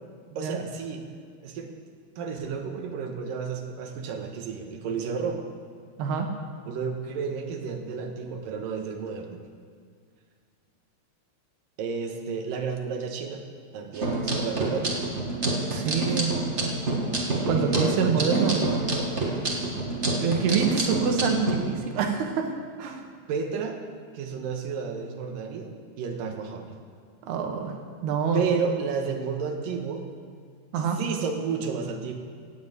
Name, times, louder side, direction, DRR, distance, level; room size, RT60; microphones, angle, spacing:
voice 1, 0.4-1.0 1.4-1.7 2.2-5.4 6.7-9.4 11.8-13.4 13.7-15.0 16.1-16.2 17.4-18.7 23.3-23.8 24.1-25.7 26.0-26.7 28.3-30.0 30.8-32.1, right 5 dB, 65° right, 3 dB, 2.8 m, -31 dB
sound 1, 13.9-21.5, right 2 dB, 45° right, 0.8 m, -28 dB
voice 2, 15.7-16.3 17.5-18.7 20.2-22.5 22.8-23.0 27.2-28.4 30.7-31.0, right 6 dB, 85° right, 4 dB, 3.5 m, -26 dB
17.5 x 7.4 x 8.1 m, 2.1 s
omnidirectional pair, 4.5 m